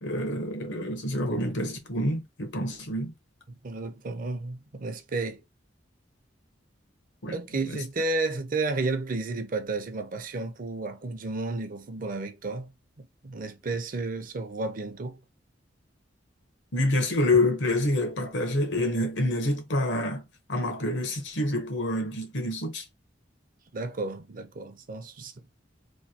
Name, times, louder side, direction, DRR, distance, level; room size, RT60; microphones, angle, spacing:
voice 1, 0.0-3.1 7.2-7.4 16.7-20.2 20.5-22.8, left 1 dB, 75° left, 1.0 m, -27 dB
voice 2, 3.5-5.4 7.3-12.7 13.0-15.2 23.7-25.5, right 3 dB, 50° right, 0.6 m, -32 dB
3.1 x 2.6 x 2.8 m
head